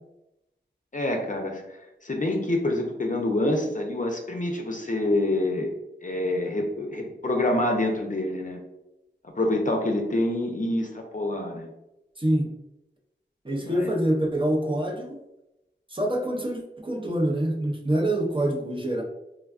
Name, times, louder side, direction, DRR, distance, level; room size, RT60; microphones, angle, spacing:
voice 1, 0.9-1.6 2.0-5.7 6.0-8.6 9.4-11.7 13.6-13.9, left 1 dB, 40° left, 2 dB, 0.5 m, -26 dB
voice 2, 12.2-12.5 13.4-15.2 15.9-19.0, right 1 dB, 25° right, 0 dB, 0.6 m, -26 dB
3.4 x 2.2 x 2.4 m, 0.91 s
wide cardioid pair, 45°, 19 cm